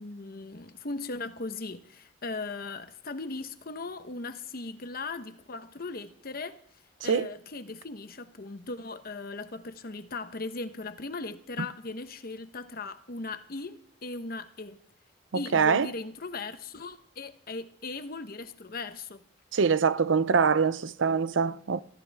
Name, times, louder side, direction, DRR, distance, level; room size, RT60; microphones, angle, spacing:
voice 1, 0.0-6.6 7.0-14.8 15.3-19.2, left 3 dB, 50° left, 1.0 m, -38 dB
voice 2, 15.5-15.9 19.5-21.8, right 5 dB, 80° right, 0.6 m, -24 dB
23.0 x 14.0 x 3.5 m
head